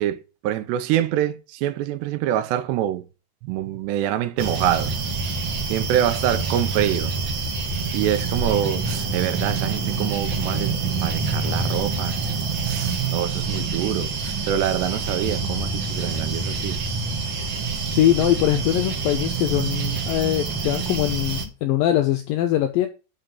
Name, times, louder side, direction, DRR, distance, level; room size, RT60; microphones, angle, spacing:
voice 1, 0.0-3.1 3.4-4.9 5.7-7.1 7.9-10.7 11.0-12.2 12.6-16.8, right 11 dB, 80° right, 3.0 m, -25 dB
sound 1, 4.4-21.5, right 4 dB, 65° right, 1.2 m, -26 dB
voice 2, 17.9-22.9, left 13 dB, 90° left, 2.0 m, -22 dB
6.7 x 6.6 x 7.6 m
omnidirectional pair, 4.9 m